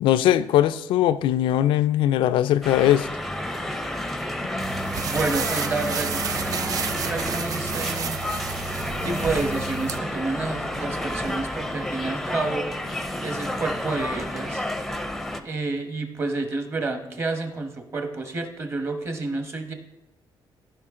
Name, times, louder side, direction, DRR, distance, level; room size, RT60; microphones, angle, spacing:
voice 1, 0.0-3.1, left 12 dB, 90° left, 0.4 m, -20 dB
sound 1, 2.6-15.4, left 1 dB, ahead, 0.6 m, -30 dB
sound 2, 4.6-10.0, right 7 dB, 45° right, 0.4 m, -31 dB
voice 2, 5.0-8.2 9.0-12.7 13.2-14.7 15.4-19.7, right 3 dB, 30° right, 1.2 m, -29 dB
14.5 x 5.5 x 3.7 m
cardioid pair, 140°, 8 cm